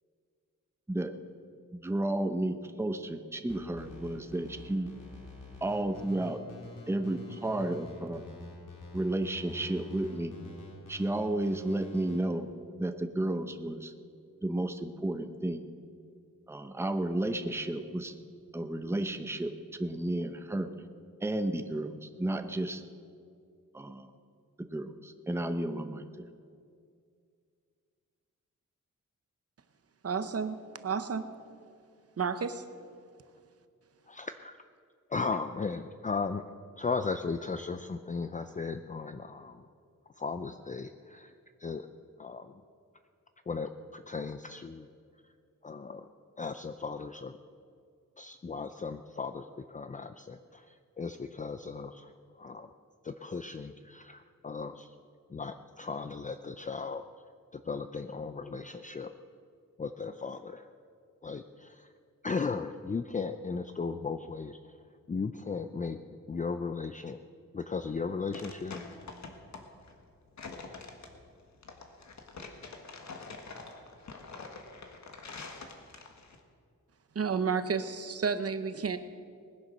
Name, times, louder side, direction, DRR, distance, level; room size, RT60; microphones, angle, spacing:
voice 1, 1.7-4.9 5.6-6.4 6.9-8.2 8.9-10.3 10.9-12.5 12.8-13.9 14.4-15.6 16.5-18.1 18.5-19.5 19.8-20.7 21.2-22.8 23.7-24.1 24.7-26.2, right 1 dB, 10° right, 8 dB, 0.7 m, -32 dB
sound 1, 3.5-12.2, left 2 dB, 75° left, 4.0 m, -47 dB
voice 2, 30.0-31.3 32.2-32.6 77.1-79.0, right 5 dB, 50° right, 11 dB, 0.9 m, -31 dB
voice 3, 34.1-34.6 35.1-36.4 36.8-39.7 40.2-41.9 42.2-42.6 43.5-44.9 45.6-46.1 46.4-47.4 48.2-52.7 53.0-54.9 55.3-57.0 57.5-59.1 59.8-60.7 61.2-61.9 62.2-64.6 65.1-66.0 66.3-67.2 67.5-68.8, left 4 dB, 25° left, 9 dB, 0.4 m, -36 dB
sound 2, 67.8-76.4, left 4 dB, 60° left, 1.6 m, -46 dB
20.0 x 10.0 x 6.5 m, 2.2 s
wide cardioid pair, 155°, 32 cm